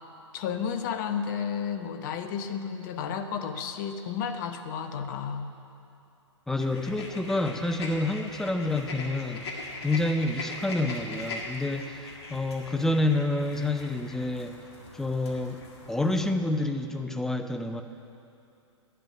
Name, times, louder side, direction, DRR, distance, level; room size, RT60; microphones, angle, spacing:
voice 1, 0.3-5.4, left 7 dB, 40° left, 8 dB, 0.8 m, -32 dB
voice 2, 6.5-9.6 9.8-14.6 14.9-15.6 15.9-17.8, left 2 dB, 5° left, 7 dB, 0.4 m, -28 dB
sound 1, 6.6-16.3, left 2 dB, 55° left, 1.9 m, -41 dB
11.0 x 10.0 x 5.6 m, 2.6 s
figure-of-eight pair, 115°, 16 cm